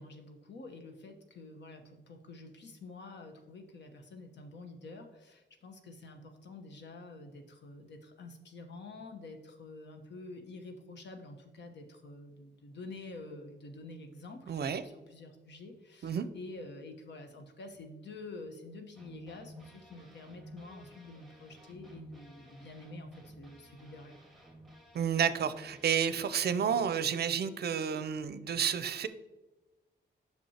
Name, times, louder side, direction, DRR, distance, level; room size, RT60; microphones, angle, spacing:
voice 1, 0.0-24.2, left 2 dB, 70° left, 5 dB, 1.0 m, -48 dB
voice 2, 14.5-14.8 16.0-16.3 24.9-29.1, right 7 dB, 60° right, 12 dB, 0.5 m, -30 dB
sound 1, 19.0-26.9, right 1 dB, ahead, 1.6 m, -54 dB
8.6 x 6.0 x 2.9 m, 1.1 s
cardioid pair, 90°, 19 cm